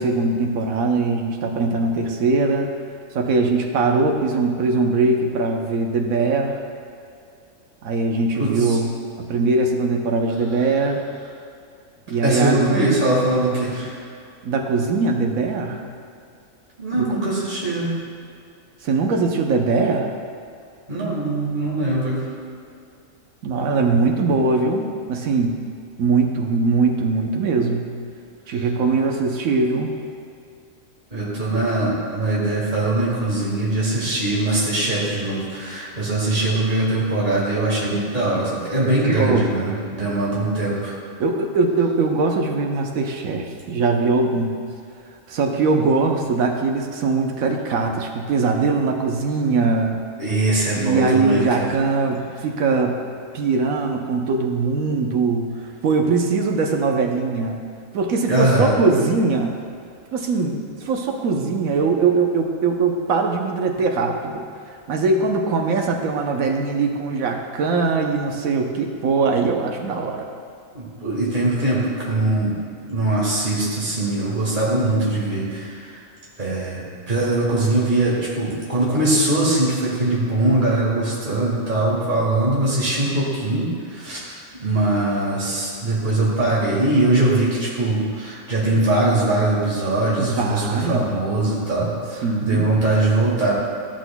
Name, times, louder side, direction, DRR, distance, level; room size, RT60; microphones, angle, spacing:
voice 1, 0.0-2.7 3.1-6.6 7.8-8.9 9.2-11.0 12.1-13.0 14.4-15.8 17.0-17.1 18.8-20.1 23.4-25.5 26.0-27.9 28.5-29.9 39.2-39.5 41.2-44.5 45.3-50.0 50.8-53.0 53.3-55.5 55.8-57.6 57.9-59.6 60.1-64.4 64.9-70.3 90.2-91.1 92.2-92.7, right 4 dB, 85° right, 2 dB, 1.2 m, -21 dB
voice 2, 8.4-8.8 12.2-14.0 16.8-17.9 20.9-22.2 31.1-40.9 50.2-51.7 58.3-58.7 70.7-72.6 72.9-76.0 76.4-93.5, right 2 dB, 35° right, -6 dB, 1.9 m, -21 dB
13.5 x 6.3 x 2.3 m, 2.4 s
omnidirectional pair, 1.4 m